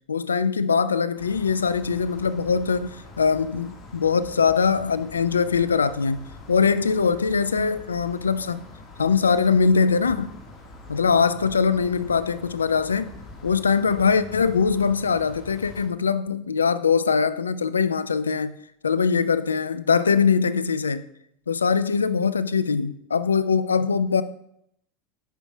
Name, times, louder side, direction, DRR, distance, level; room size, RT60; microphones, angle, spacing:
voice 1, 0.1-8.6 9.0-10.3 10.9-13.1 13.4-18.6 18.8-21.1 21.5-24.2, left 5 dB, 85° left, 0.3 m, -22 dB
sound 1, 1.2-15.9, left 2 dB, 40° left, 1.7 m, -44 dB
10.0 x 5.6 x 2.3 m
figure-of-eight pair, 80°, 0 cm